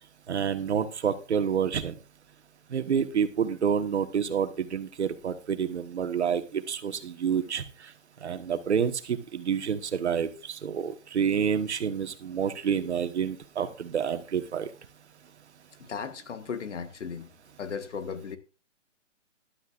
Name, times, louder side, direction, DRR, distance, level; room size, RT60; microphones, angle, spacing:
voice 1, 0.3-2.0 2.7-7.9 8.2-14.7, right 7 dB, 60° right, 1.4 m, -28 dB
voice 2, 15.8-17.3 17.6-18.4, left 6 dB, 70° left, 1.5 m, -36 dB
14.5 x 12.0 x 2.5 m
hypercardioid pair, 170°, 37 cm